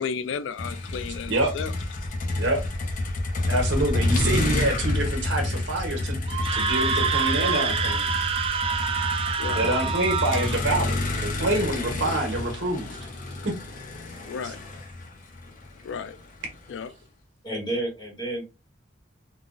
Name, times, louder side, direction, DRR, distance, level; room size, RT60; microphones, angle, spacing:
voice 1, 0.0-1.7 9.4-9.6 14.2-14.6 15.8-16.2 16.7-16.9, left 6 dB, 70° left, 0.3 m, -33 dB
Motor vehicle (road), 0.6-16.7, left 2 dB, 45° left, 0.7 m, -29 dB
voice 2, 3.5-8.1 9.5-13.0 13.4-13.5 14.4-14.5, right 1 dB, 75° right, 1.2 m, -26 dB
Screaming, 6.3-10.6, right 5 dB, 30° right, 0.3 m, -26 dB
voice 3, 9.5-9.8 12.3-12.4 17.4-18.5, right 1 dB, 25° left, 1.2 m, -32 dB
3.9 x 2.3 x 2.4 m
head